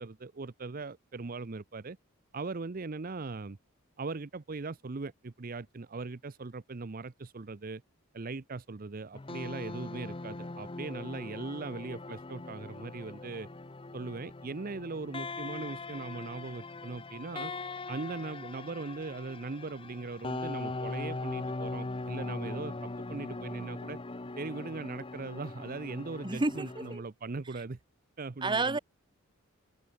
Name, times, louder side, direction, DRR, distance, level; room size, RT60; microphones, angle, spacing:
voice 1, 0.0-2.0 2.3-3.6 4.0-7.8 8.1-13.5 13.9-17.5 17.9-24.0 24.4-27.8 28.2-28.8, right 3 dB, 40° right, 0.6 m, -39 dB
sound 1, 9.1-27.0, left 3 dB, 25° left, 0.7 m, -40 dB
voice 2, 26.2-27.0 28.4-28.8, right 3 dB, 20° right, 1.0 m, -30 dB
head